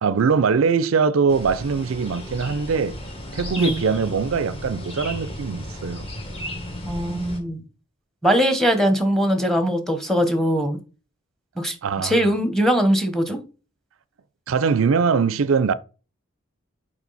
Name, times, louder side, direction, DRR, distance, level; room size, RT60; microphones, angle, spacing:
voice 1, 0.0-3.0 3.3-6.1 11.8-12.2 14.5-15.7, right 5 dB, 80° right, 0.4 m, -22 dB
sound 1, 1.3-7.4, left 1 dB, 30° left, 1.7 m, -34 dB
voice 2, 6.8-7.6 8.2-10.8 11.6-11.8 12.0-13.4, equal, ahead, 1.1 m, -21 dB
7.1 x 4.8 x 4.1 m
head